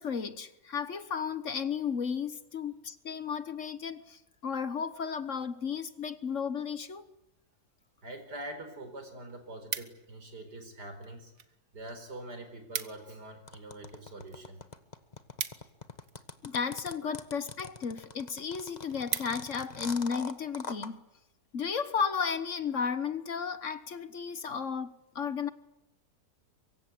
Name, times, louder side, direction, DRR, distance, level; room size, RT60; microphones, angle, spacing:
voice 1, 0.0-7.0 16.4-21.0 21.5-25.5, left 6 dB, 50° left, 1.5 m, -34 dB
voice 2, 8.0-11.3 11.7-14.6 17.0-17.1, right 1 dB, 80° right, 5.3 m, -44 dB
sound 1, 8.5-8.6 8.9-10.3 11.0-11.5 11.8-11.9 12.2-12.3 12.5-13.2 13.5-16.4 17.1-17.4 17.9-18.0 18.4-18.5 18.7-19.7 20.2-20.4, right 7 dB, 55° right, 1.7 m, -39 dB
sound 2, 13.5-20.9, left 3 dB, 25° left, 1.4 m, -43 dB
24.0 x 23.0 x 9.4 m
omnidirectional pair, 1.7 m